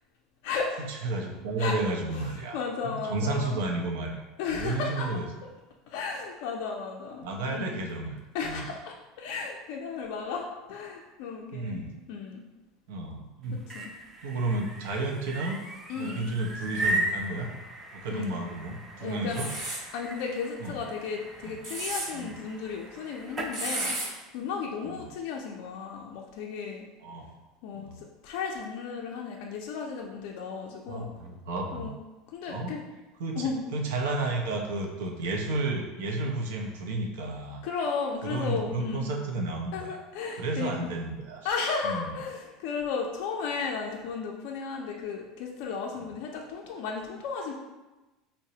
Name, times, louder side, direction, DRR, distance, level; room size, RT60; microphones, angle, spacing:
voice 1, 0.9-4.2 4.5-5.3 7.2-8.6 11.5-11.9 12.9-13.6 14.2-15.6 16.0-17.5 17.9-19.5 20.6-20.8 21.4-21.5 22.1-22.3 24.8-25.0 27.0-27.3 27.7-28.0 30.9-31.9 32.5-32.7 33.2-37.6 38.2-40.0 40.3-41.5 41.8-42.1 46.0-46.1, right 2 dB, 90° right, 2 dB, 0.5 m, -32 dB
voice 2, 2.1-3.6 4.4-5.2 5.9-7.8 8.3-11.8 12.1-12.4 13.7-13.9 15.9-16.3 18.1-18.3 19.0-19.4 19.9-24.0 24.3-26.9 27.6-31.1 31.7-31.9 32.3-32.8 33.4-33.7 37.6-39.1 39.7-40.9 41.4-47.5, left 5 dB, 65° left, 0 dB, 0.4 m, -34 dB
sound 1, 13.4-23.6, right 2 dB, 20° right, 0.4 m, -37 dB
sound 2, 19.3-19.8 21.4-22.1 23.5-24.1, right 2 dB, 45° right, 1.0 m, -32 dB
3.9 x 2.0 x 2.7 m, 1.1 s
supercardioid pair, 140°, 0 cm